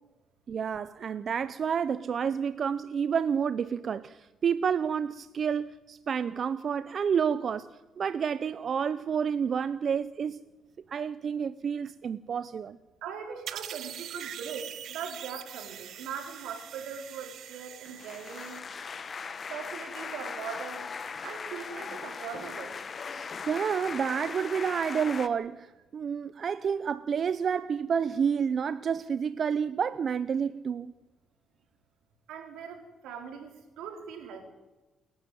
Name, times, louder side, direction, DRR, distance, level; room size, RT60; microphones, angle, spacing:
voice 1, 0.5-10.4 10.9-12.8 23.1-30.9, right 7 dB, 50° right, 0.7 m, -29 dB
voice 2, 13.0-18.6 19.5-20.9 21.2-22.8 32.3-34.4, right 7 dB, 90° right, 4.4 m, -40 dB
sound 1, 13.5-18.6, right 10 dB, 70° right, 1.2 m, -43 dB
sound 2, 17.9-25.3, left 5 dB, 40° left, 1.4 m, -39 dB
28.5 x 11.5 x 9.4 m
cardioid pair, 90°, 0 cm